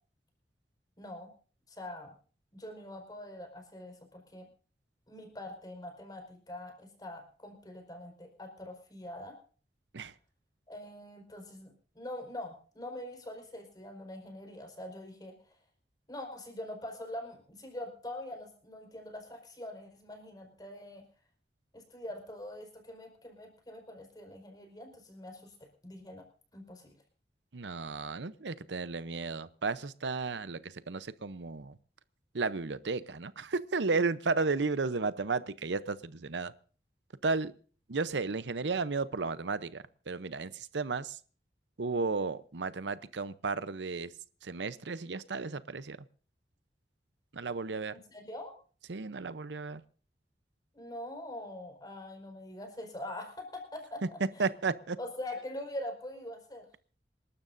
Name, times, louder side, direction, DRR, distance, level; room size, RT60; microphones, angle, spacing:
voice 1, 1.0-1.3 1.7-2.1 2.5-4.5 5.1-9.4 10.7-15.4 16.1-21.0 21.7-26.3 26.5-26.9 47.9-48.5 50.7-54.4 55.0-56.7, left 1 dB, 20° left, 4 dB, 4.8 m, -44 dB
voice 2, 27.5-31.8 32.3-36.5 37.2-37.5 37.9-41.2 41.8-44.1 44.4-46.0 47.3-47.9 48.9-49.8 54.4-55.0, right 4 dB, 90° right, 15 dB, 0.7 m, -33 dB
27.5 x 12.0 x 2.6 m, 0.41 s
head